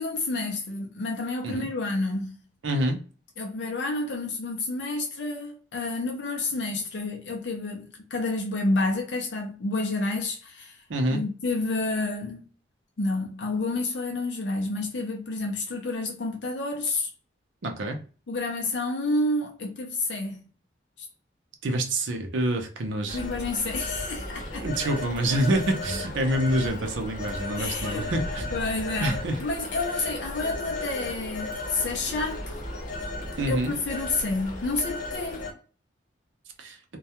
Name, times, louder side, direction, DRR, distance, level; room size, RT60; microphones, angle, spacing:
voice 1, 0.0-2.3 3.4-10.8 11.1-12.5 13.0-17.1 18.3-20.5 23.1-24.7 27.6-28.1 28.5-32.6 33.5-33.6 33.9-35.5, left 2 dB, 65° left, 0.5 m, -29 dB
voice 2, 2.6-3.0 10.9-11.2 17.6-18.0 21.6-23.2 24.6-28.5 29.0-29.4 33.4-33.7 36.6-36.8, right 1 dB, 85° right, 0.6 m, -27 dB
Telephone, 23.1-35.5, left 2 dB, 45° left, 0.8 m, -35 dB
2.2 x 2.1 x 2.8 m
head